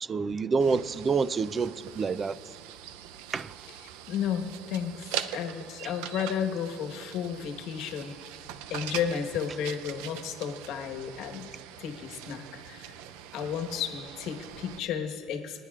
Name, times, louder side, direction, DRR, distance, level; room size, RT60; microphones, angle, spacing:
voice 1, 0.0-2.4 3.3-3.5, right 5 dB, 30° right, 0.4 m, -27 dB
sound 1, 0.6-14.8, right 10 dB, 85° right, 0.5 m, -42 dB
voice 2, 4.1-8.1 8.7-11.5 11.8-12.9 13.3-15.6, left 8 dB, 70° left, 1.2 m, -33 dB
29.5 x 11.0 x 2.4 m
supercardioid pair, 105°, 0 cm